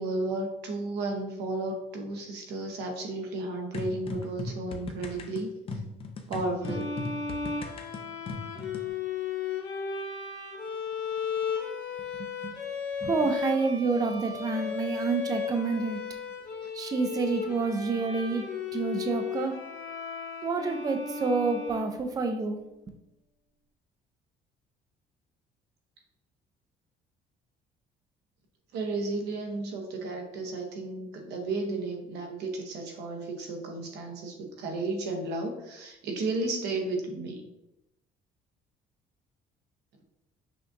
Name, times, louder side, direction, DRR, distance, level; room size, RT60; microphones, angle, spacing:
voice 1, 0.0-5.5 6.3-7.0 16.6-16.7 28.7-37.4, right 2 dB, 80° right, 3 dB, 0.9 m, -33 dB
sound 1, 3.7-8.9, left 3 dB, 35° left, 0.5 m, -38 dB
sound 2, 6.6-22.3, left 6 dB, 85° left, 1.2 m, -35 dB
voice 2, 13.0-16.0 16.7-19.6 20.4-22.6, right 4 dB, 20° right, 6 dB, 0.4 m, -28 dB
5.7 x 2.6 x 2.5 m, 0.85 s
cardioid pair, 110°, 17 cm